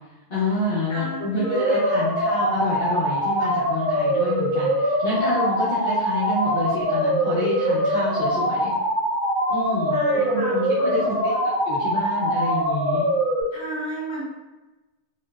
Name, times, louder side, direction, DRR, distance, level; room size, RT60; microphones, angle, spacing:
voice 1, 0.3-8.7 9.5-11.3 11.6-13.1, left 2 dB, 55° left, -10 dB, 0.9 m, -28 dB
voice 2, 0.9-1.9 9.9-11.3 13.5-14.2, right 1 dB, 25° left, -8 dB, 1.3 m, -33 dB
sound 1, 1.4-13.4, equal, 45° right, 0.9 m, -23 dB
3.0 x 2.9 x 2.3 m, 1.1 s
omnidirectional pair, 1.2 m